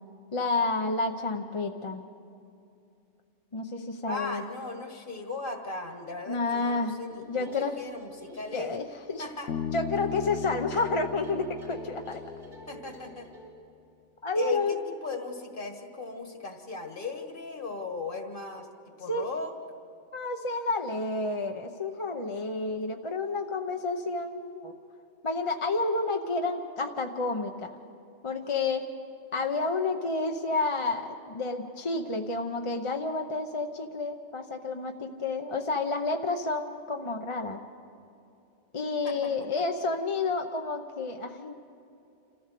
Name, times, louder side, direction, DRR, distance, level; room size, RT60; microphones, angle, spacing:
voice 1, 0.3-2.0 3.5-4.4 6.3-7.0 7.3-7.7 8.5-9.3 9.7-12.2 14.2-14.8 19.1-19.3 20.1-24.8 25.2-27.8 28.2-28.8 29.3-37.6 38.7-41.5, left 3 dB, 30° left, 4 dB, 0.7 m, -30 dB
voice 2, 4.1-8.7 9.2-9.5 12.7-13.3 14.4-19.5 39.0-39.6, left 4 dB, 45° left, 4 dB, 1.8 m, -37 dB
sound 1, 7.1-13.5, equal, 80° right, 3.7 m, -48 dB
Bass guitar, 9.5-13.0, left 9 dB, 75° left, 1.0 m, -37 dB
27.5 x 14.5 x 6.8 m, 2.6 s
omnidirectional pair, 1.2 m